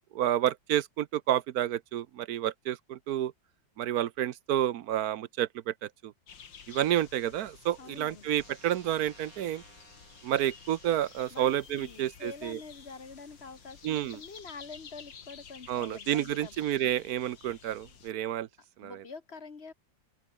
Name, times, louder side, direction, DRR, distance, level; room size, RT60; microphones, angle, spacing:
voice 1, 0.1-3.3 3.8-6.1 6.7-9.6 10.2-12.6 13.8-14.2 15.7-18.5 18.8-19.0, right 12 dB, 65° right, 1.1 m, -30 dB
sound 1, 6.3-18.1, left 6 dB, 75° left, 2.8 m, -52 dB
voice 2, 7.8-8.3 11.3-16.5 16.8-17.0 18.8-19.7, left 4 dB, 35° left, 1.6 m, -46 dB
sound 2, 8.4-14.4, right 3 dB, 45° right, 5.0 m, -59 dB
open air
omnidirectional pair, 2.0 m